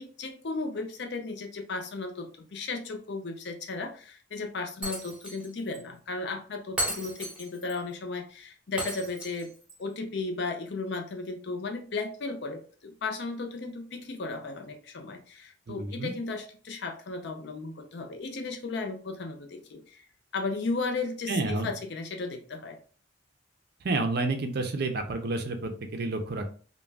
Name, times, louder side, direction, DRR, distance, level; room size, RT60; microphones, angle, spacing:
voice 1, 0.0-9.5 9.8-20.0 20.3-22.8, left 3 dB, 55° left, 5 dB, 0.5 m, -35 dB
Shatter, 4.8-5.5 5.7-5.8 6.8-7.8 8.8-9.8, equal, 5° right, 0.7 m, -35 dB
voice 2, 15.7-16.1 21.3-21.7 23.8-26.5, right 2 dB, 50° right, 6 dB, 0.5 m, -30 dB
2.4 x 2.2 x 3.3 m, 0.40 s
head